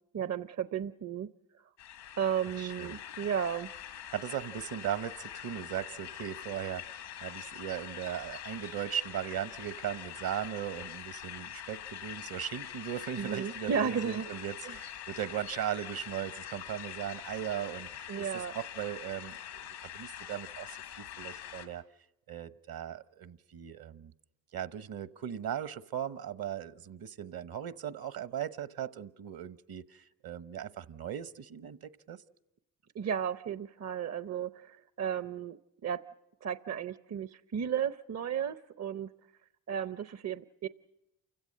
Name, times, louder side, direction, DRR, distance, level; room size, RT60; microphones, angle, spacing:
voice 1, 0.1-1.3 2.2-3.7 13.2-14.4 14.7-14.8 18.1-18.5 32.9-36.0 36.4-39.1 39.7-40.7, right 8 dB, 35° right, 14 dB, 0.7 m, -34 dB
sound 1, 1.8-21.7, left 10 dB, 85° left, 2.0 m, -44 dB
voice 2, 2.6-2.9 4.1-21.8 22.3-24.1 24.5-32.2, right 10 dB, 55° right, 15 dB, 1.1 m, -38 dB
29.0 x 16.0 x 6.6 m, 0.88 s
hypercardioid pair, 45°, 44 cm